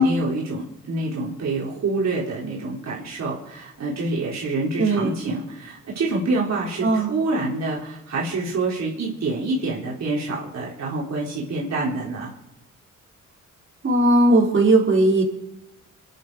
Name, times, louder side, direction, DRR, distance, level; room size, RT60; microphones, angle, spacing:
voice 1, 0.0-12.3, right 3 dB, 60° right, -4 dB, 3.8 m, -27 dB
voice 2, 4.8-5.1 6.8-7.1 13.8-15.2, right 2 dB, 40° right, -3 dB, 4.4 m, -17 dB
27.5 x 10.5 x 4.8 m, 0.88 s
cardioid pair, 115°, 30 cm